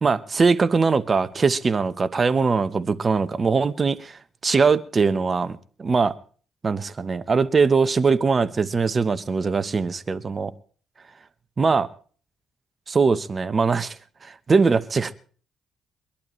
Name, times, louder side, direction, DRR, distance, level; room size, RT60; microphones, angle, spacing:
voice 1, 0.0-6.1 6.6-10.5 11.6-11.9 12.9-14.0 14.2-15.1, right 4 dB, 35° right, 1.0 m, -21 dB
24.0 x 11.5 x 3.1 m
cardioid pair, 90°, 0 cm